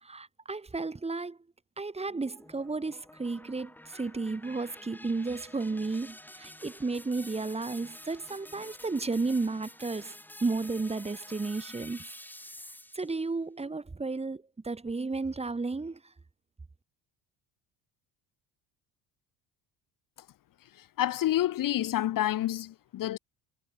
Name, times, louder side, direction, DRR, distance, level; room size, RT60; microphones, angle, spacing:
voice 1, 0.0-1.4 1.8-10.1 10.4-12.1 12.9-16.0, right 3 dB, 15° right, 1.8 m, -33 dB
sound 1, 2.1-13.2, left 1 dB, 5° left, 3.2 m, -49 dB
voice 2, 21.0-23.2, left 13 dB, 50° left, 1.1 m, -28 dB
cardioid pair, 120°, 42 cm